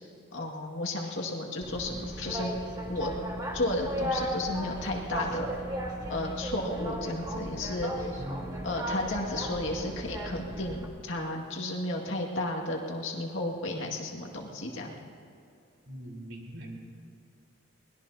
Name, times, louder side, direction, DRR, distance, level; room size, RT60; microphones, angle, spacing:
voice 1, 0.3-2.5 2.9-3.1 3.5-5.5 6.1-8.1 8.6-15.0, left 2 dB, 65° left, 0 dB, 2.1 m, -33 dB
Boat Water vehicle, 1.6-10.8, equal, 15° right, 1.7 m, -35 dB
voice 2, 8.2-8.5 15.9-16.8, equal, 70° right, -2 dB, 4.1 m, -41 dB
23.5 x 20.5 x 2.8 m, 2.6 s
head